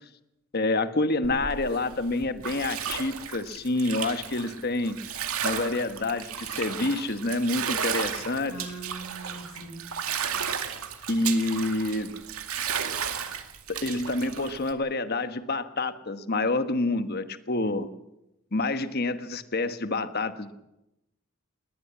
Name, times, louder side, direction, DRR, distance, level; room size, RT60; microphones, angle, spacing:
voice 1, 0.5-5.0 5.4-8.7 11.1-12.2 13.7-17.9 18.5-20.5, left 2 dB, 45° left, 10 dB, 1.3 m, -28 dB
Bathtub (filling or washing), 1.2-14.7, right 8 dB, 80° right, 2.2 m, -34 dB
voice 2, 8.5-9.8, right 2 dB, 75° left, -4 dB, 7.2 m, -41 dB
20.5 x 18.5 x 8.5 m, 0.89 s
head